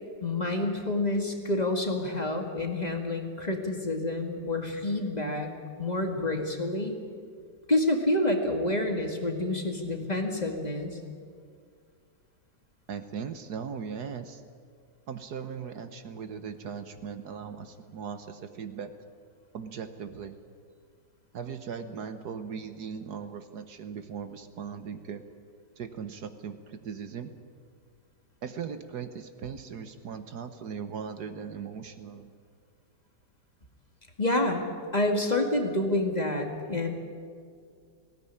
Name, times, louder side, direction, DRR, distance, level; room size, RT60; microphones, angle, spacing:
voice 1, 0.2-5.5 5.8-7.0 7.7-11.0 34.2-36.9, left 1 dB, 25° left, 3 dB, 2.1 m, -28 dB
voice 2, 12.9-14.4 15.1-18.9 19.5-20.3 21.3-25.2 25.8-27.3 28.4-32.3, right 6 dB, 65° right, 9 dB, 1.5 m, -38 dB
19.5 x 17.0 x 9.9 m, 2.1 s
omnidirectional pair, 1.9 m